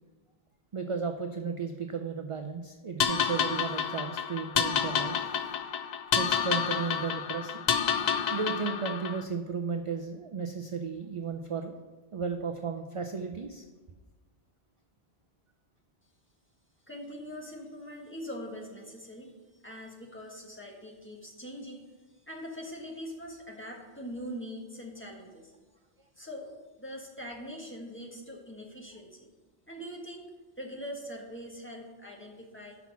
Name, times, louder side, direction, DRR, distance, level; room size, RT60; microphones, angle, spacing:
voice 1, 0.7-5.2 6.1-7.6 8.3-11.7 12.1-13.6, right 5 dB, 45° right, 5 dB, 0.4 m, -34 dB
sound 1, 3.0-9.2, left 7 dB, 55° left, 0.5 m, -29 dB
voice 2, 16.9-19.3 19.6-21.8 22.1-25.5 26.1-29.3 29.7-32.8, equal, 10° left, -1 dB, 1.3 m, -42 dB
6.0 x 5.8 x 7.1 m, 1.3 s
omnidirectional pair, 1.1 m